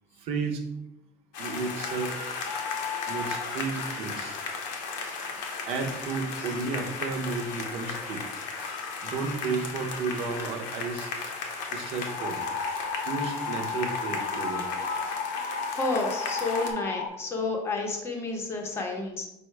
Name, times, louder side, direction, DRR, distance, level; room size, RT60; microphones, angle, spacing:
voice 1, 0.2-0.6 1.4-2.2 3.1-4.4 5.7-8.2 9.0-11.1 11.7-12.4 13.1-14.6, right 4 dB, 55° right, 3 dB, 0.6 m, -32 dB
sound 1, 1.3-16.7, left 4 dB, 85° left, 0.8 m, -35 dB
sound 2, 12.1-17.1, left 4 dB, 65° left, 0.5 m, -33 dB
voice 2, 15.7-19.2, left 3 dB, 20° left, 1 dB, 0.7 m, -30 dB
5.5 x 2.1 x 4.5 m, 0.86 s
cardioid pair, 170°, 12 cm